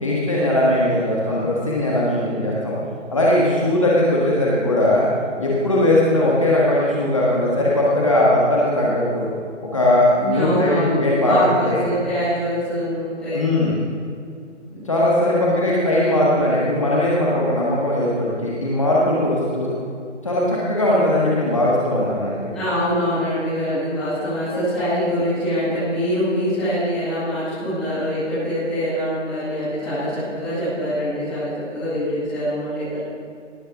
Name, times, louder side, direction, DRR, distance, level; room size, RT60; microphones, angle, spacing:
voice 1, 0.0-2.7 3.1-5.1 5.4-9.3 9.7-11.4 11.7-11.8 13.3-13.7 14.8-19.7 20.2-22.5, left 1 dB, 25° left, -5 dB, 1.4 m, -19 dB
voice 2, 10.2-11.0 11.2-13.5 14.7-15.6 22.5-33.0, equal, ahead, -16 dB, 1.8 m, -24 dB
18.0 x 6.7 x 6.0 m, 2.3 s
hypercardioid pair, 180°, 38 cm